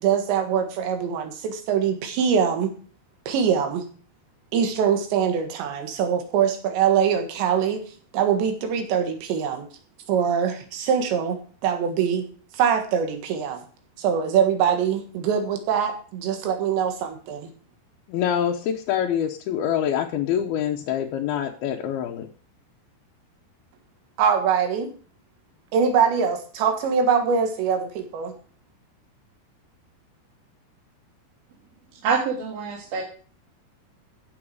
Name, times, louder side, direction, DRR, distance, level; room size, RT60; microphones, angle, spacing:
voice 1, 0.0-2.7 3.3-3.8 4.5-7.8 8.1-9.7 10.1-11.4 11.6-12.2 12.5-13.6 14.0-17.5 24.2-24.9 25.7-28.3, right 7 dB, 85° right, 6 dB, 3.9 m, -23 dB
voice 2, 18.1-22.3, left 9 dB, 75° left, 0 dB, 2.5 m, -25 dB
voice 3, 32.0-33.0, right 5 dB, 65° right, -2 dB, 3.4 m, -25 dB
15.0 x 7.1 x 4.9 m, 0.42 s
omnidirectional pair, 5.0 m